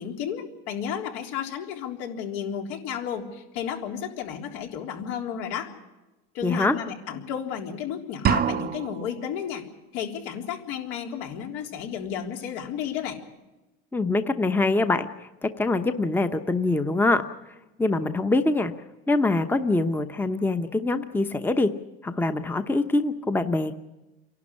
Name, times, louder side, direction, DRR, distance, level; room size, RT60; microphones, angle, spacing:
voice 1, 0.0-5.7 6.3-9.6 9.9-13.2, left 8 dB, 70° left, 3 dB, 3.7 m, -32 dB
voice 2, 6.4-6.8 13.9-17.2 17.8-18.7 19.1-21.7 22.0-23.8, left 2 dB, 5° left, 9 dB, 0.9 m, -24 dB
sound 1, 8.3-9.2, right 8 dB, 30° right, 0.7 m, -25 dB
28.0 x 12.0 x 9.9 m, 1.1 s
supercardioid pair, 125°, 32 cm